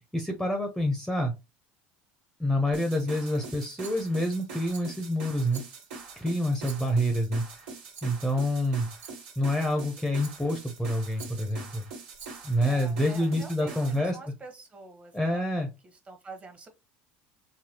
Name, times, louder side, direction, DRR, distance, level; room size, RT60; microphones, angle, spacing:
voice 1, 0.1-1.3 2.4-5.6 6.2-7.7 8.0-8.9 9.4-11.8 12.4-14.2 15.1-15.7, equal, ahead, 0.7 m, -27 dB
sound 1, 2.7-14.0, right 4 dB, 80° right, 1.6 m, -44 dB
Rattle, 3.8-4.3 4.7-5.1 5.5-6.0 6.6-7.2 7.9-8.3 9.0-9.4 10.2-10.6 11.2-11.6 12.1-12.6, right 6 dB, 50° right, 1.4 m, -49 dB
voice 2, 12.6-16.7, right 3 dB, 25° right, 1.1 m, -46 dB
3.9 x 2.3 x 2.8 m
supercardioid pair, 90°, 5 cm